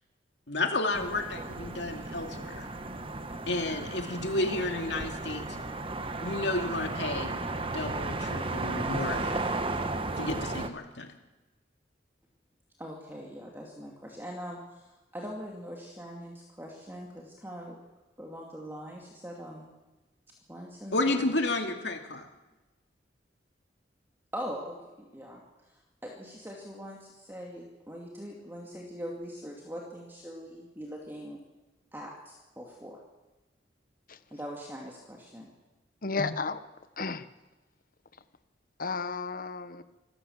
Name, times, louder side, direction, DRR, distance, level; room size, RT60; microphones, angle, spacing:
voice 1, 0.5-2.7 3.5-5.5 6.2-7.3 7.7-9.4 10.2-11.1 20.9-22.3, left 2 dB, 70° left, 4 dB, 2.6 m, -31 dB
sound 1, 0.9-10.7, right 2 dB, 30° right, 1.3 m, -34 dB
voice 2, 12.8-14.9 15.1-17.8 18.2-19.7 20.5-21.3 24.3-31.4 31.9-33.0 34.3-35.5, equal, 10° right, -1 dB, 2.4 m, -42 dB
voice 3, 36.0-36.6 37.0-37.3 38.8-39.8, left 4 dB, 50° left, 12 dB, 1.1 m, -32 dB
26.5 x 14.5 x 7.3 m, 1.1 s
head